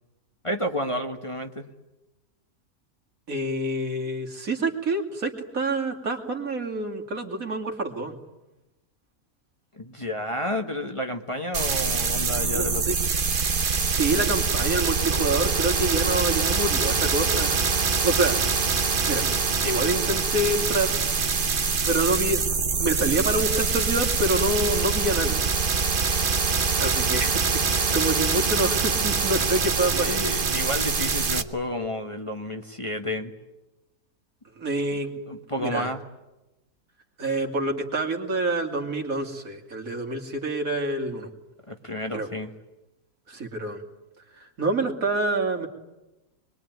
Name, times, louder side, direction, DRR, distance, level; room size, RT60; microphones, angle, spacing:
voice 1, 0.4-1.6 9.7-12.8 29.9-33.3 35.3-36.0 41.7-42.5, left 1 dB, 20° left, 3 dB, 1.5 m, -31 dB
voice 2, 3.3-8.2 12.5-13.0 13.9-18.5 19.0-19.2 19.6-21.0 21.8-25.4 26.8-30.1 34.6-35.1 35.6-35.9 37.2-41.3 42.1-42.3 43.3-43.8 44.4-45.7, right 2 dB, 70° right, 3 dB, 2.9 m, -27 dB
sound 1, 11.5-31.4, right 5 dB, 40° right, 1.2 m, -24 dB
26.0 x 22.0 x 9.4 m, 1.0 s
omnidirectional pair, 1.5 m